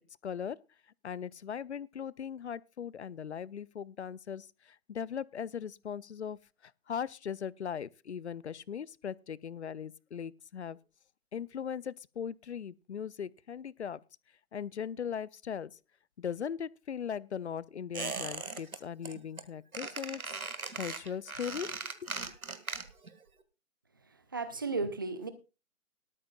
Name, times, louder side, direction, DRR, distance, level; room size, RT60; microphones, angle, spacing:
voice 1, 0.2-0.6 1.0-10.8 11.3-14.0 14.5-15.8 16.2-20.4 20.8-22.1, left 8 dB, 55° left, 0.6 m, -39 dB
Squeak, 17.9-18.8 19.0-19.4 19.7-23.1 23.4-23.5, right 4 dB, 85° right, 1.8 m, -39 dB
voice 2, 24.0-25.3, right 3 dB, 15° right, 0.5 m, -35 dB
18.5 x 13.0 x 2.3 m
figure-of-eight pair, 150°, 42 cm